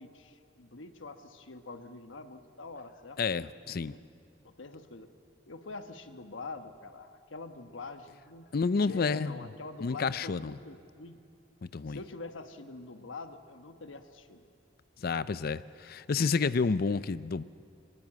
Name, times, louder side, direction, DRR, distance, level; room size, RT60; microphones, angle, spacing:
voice 1, 0.0-3.2 3.7-4.0 4.4-5.1 5.4-8.5 8.9-11.2 11.9-14.4, left 3 dB, 90° left, 7 dB, 1.2 m, -45 dB
voice 2, 3.2-4.0 8.5-9.4 9.8-10.6 11.6-12.0 15.0-17.4, left 4 dB, 50° left, 16 dB, 0.5 m, -30 dB
21.5 x 21.0 x 7.5 m, 2.4 s
head